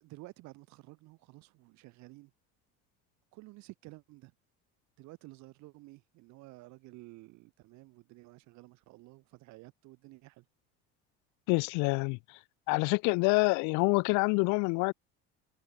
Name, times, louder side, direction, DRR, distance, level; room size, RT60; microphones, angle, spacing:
voice 1, 0.0-2.3 3.3-4.3 5.0-10.4, right 21 dB, 65° right, 2.2 m, -52 dB
voice 2, 11.5-12.4 12.7-14.9, left 31 dB, 70° left, 0.7 m, -27 dB
cardioid pair, 120°, 30 cm